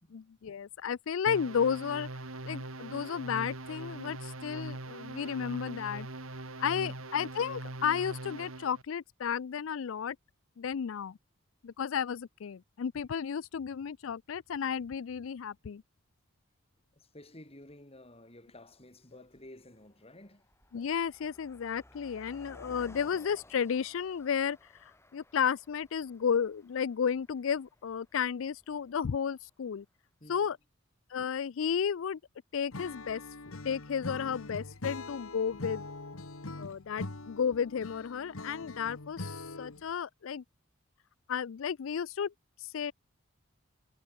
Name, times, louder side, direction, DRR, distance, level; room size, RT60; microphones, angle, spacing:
voice 1, 0.1-2.1 2.4-6.1 6.6-10.2 10.6-11.2 11.6-15.8 20.7-29.8 30.3-30.6 31.1-32.2 32.5-33.2 33.5-35.8 36.6-40.4 41.3-42.3 42.6-42.9, left 7 dB, 65° left, 0.4 m, -33 dB
sound 1, 1.3-8.8, right 2 dB, 80° right, 2.7 m, -42 dB
voice 2, 16.9-20.5 30.2-30.5, left 1 dB, 30° left, 4.6 m, -53 dB
Car passing by, 17.7-17.8 18.6-18.8 19.1-29.5, left 1 dB, 15° left, 7.8 m, -57 dB
Acoustic guitar / Strum, 32.7-39.9, left 2 dB, 85° left, 2.0 m, -43 dB
head